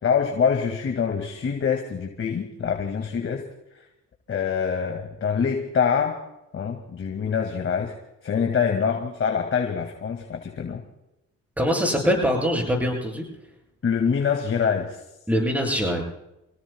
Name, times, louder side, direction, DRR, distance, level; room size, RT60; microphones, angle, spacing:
voice 1, 0.0-3.4 4.3-6.2 6.5-7.9 8.2-10.8 13.8-15.0, left 6 dB, 45° left, 3 dB, 2.3 m, -25 dB
voice 2, 11.6-13.2 15.3-16.0, equal, 5° right, 0 dB, 7.9 m, -23 dB
29.0 x 17.5 x 2.3 m, 0.89 s
cardioid pair, 90°, 30 cm